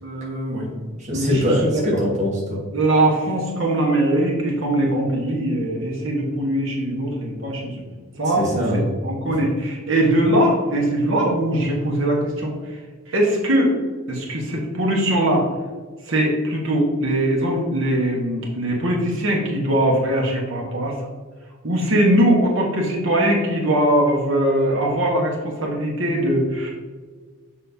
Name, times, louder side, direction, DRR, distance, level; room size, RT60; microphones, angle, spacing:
voice 1, 0.0-0.7 1.1-1.8 2.7-7.8 8.2-12.5 13.1-13.7 14.1-15.4 16.1-20.9 21.6-26.7, right 1 dB, 60° right, -1 dB, 1.3 m, -21 dB
voice 2, 0.7-2.6 8.2-8.9, equal, 35° right, -4 dB, 1.2 m, -23 dB
6.8 x 5.3 x 2.7 m, 1.5 s
head